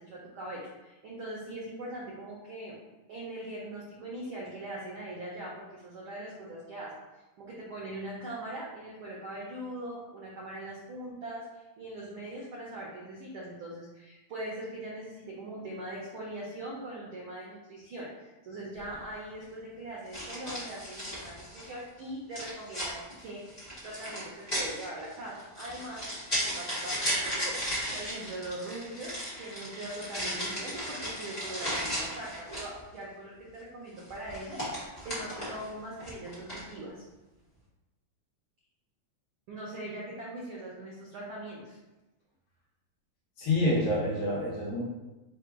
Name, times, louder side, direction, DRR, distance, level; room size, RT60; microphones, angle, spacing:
voice 1, 0.0-2.7 3.1-6.9 7.4-27.5 27.9-34.6 35.0-37.0 39.5-41.8, right 1 dB, 90° right, -4 dB, 1.1 m, -41 dB
sound 1, 18.8-19.0 20.1-21.8 22.3-32.8 34.0-35.7 36.0-36.7, equal, 40° left, 0.6 m, -35 dB
voice 2, 43.4-44.8, left 1 dB, 65° left, -5 dB, 1.7 m, -27 dB
4.7 x 2.2 x 4.7 m, 1.1 s
omnidirectional pair, 3.4 m